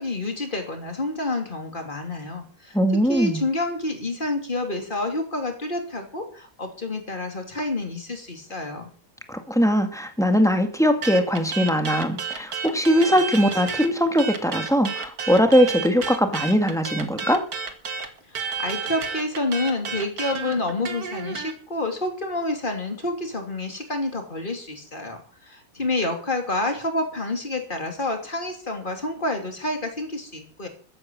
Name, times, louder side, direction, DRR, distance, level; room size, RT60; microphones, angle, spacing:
voice 1, 0.0-8.9 18.3-30.7, left 2 dB, 35° left, 4 dB, 3.1 m, -28 dB
voice 2, 2.7-3.4 9.3-17.5, equal, ahead, 6 dB, 1.8 m, -20 dB
sound 1, 11.0-13.9 14.2-21.5, right 5 dB, 90° right, 2.2 m, -31 dB
14.0 x 9.4 x 7.5 m, 0.43 s
omnidirectional pair, 1.5 m